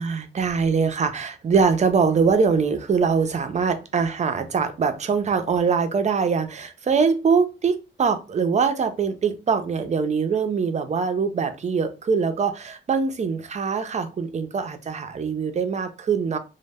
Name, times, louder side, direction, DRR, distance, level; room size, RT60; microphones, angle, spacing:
voice 1, 0.0-16.4, right 5 dB, 35° right, 0.4 m, -23 dB
2.0 x 2.0 x 3.3 m
cardioid pair, 105°, 20 cm